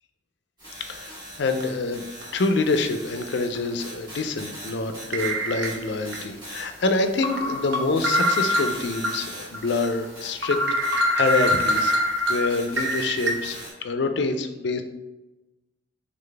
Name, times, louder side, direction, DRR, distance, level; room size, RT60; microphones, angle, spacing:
sound 1, 0.6-13.7, equal, 20° right, 1.4 m, -41 dB
voice 1, 0.8-2.0 2.3-10.6 10.8-11.9 12.3-14.8, left 3 dB, 60° left, 7 dB, 0.4 m, -26 dB
sound 2, 1.6-1.8 2.2-2.3 3.5-3.7 5.1-6.2 6.6-6.7 7.2-9.1 9.5-9.6 10.0-10.1 10.4-13.3, equal, 70° right, 0.7 m, -24 dB
3.9 x 3.5 x 3.3 m, 1.1 s
head